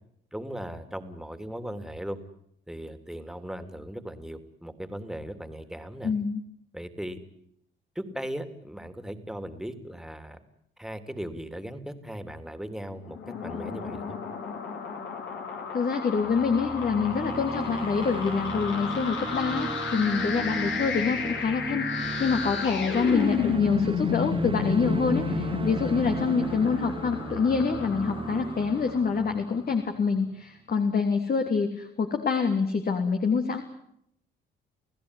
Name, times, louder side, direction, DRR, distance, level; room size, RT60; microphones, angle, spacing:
voice 1, 0.3-2.2 2.7-6.1 6.7-7.2 7.9-10.4 10.8-14.2, equal, ahead, 9 dB, 3.1 m, -38 dB
voice 2, 6.0-6.4 15.7-33.6, left 5 dB, 50° left, 5 dB, 3.1 m, -26 dB
sound 1, 13.1-29.4, left 5 dB, 70° left, 5.1 m, -32 dB
sound 2, 16.2-30.4, right 4 dB, 25° right, 1.0 m, -37 dB
30.0 x 16.0 x 10.0 m, 0.74 s
cardioid pair, 90°, 20 cm